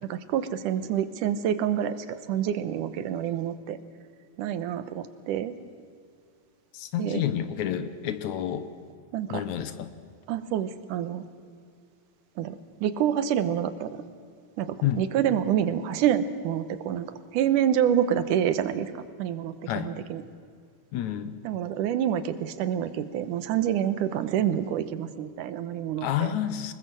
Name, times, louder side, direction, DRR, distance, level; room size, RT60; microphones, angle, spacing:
voice 1, 0.0-3.8 4.4-5.5 7.0-7.2 9.1-9.4 10.3-11.3 12.4-14.0 14.6-17.1 17.3-20.2 21.4-26.3, right 10 dB, 80° right, 12 dB, 2.5 m, -27 dB
voice 2, 6.7-8.7 9.3-9.9 14.8-15.1 19.7-19.9 20.9-21.4 26.0-26.7, left 10 dB, 70° left, 11 dB, 2.2 m, -29 dB
25.0 x 20.5 x 7.7 m, 2.1 s
omnidirectional pair, 3.7 m